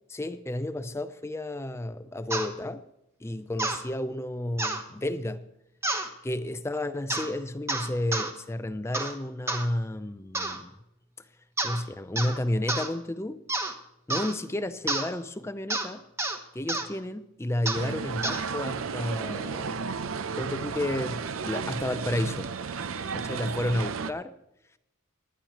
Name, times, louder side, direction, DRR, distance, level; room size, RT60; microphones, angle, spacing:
voice 1, 0.1-2.8 3.2-5.5 6.2-10.7 11.6-13.4 14.1-16.0 16.5-19.9 20.4-22.5 23.1-24.3, left 1 dB, 10° left, 0.5 m, -32 dB
sound 1, 2.3-2.5 3.6-3.8 4.6-4.8 5.8-6.1 7.1-7.3 7.7-8.3 8.9-9.2 9.5-9.7 10.3-10.6 11.6-11.8 12.2-12.4 12.7-12.9 13.5-13.7 14.1-14.3 14.9-15.1 15.7-15.9 16.2-16.4 16.7-16.9 17.7-17.9 18.2-18.4, right 2 dB, 10° right, 1.1 m, -29 dB
sound 2, 17.7-24.1, right 5 dB, 70° right, 0.6 m, -33 dB
19.5 x 11.5 x 3.0 m
head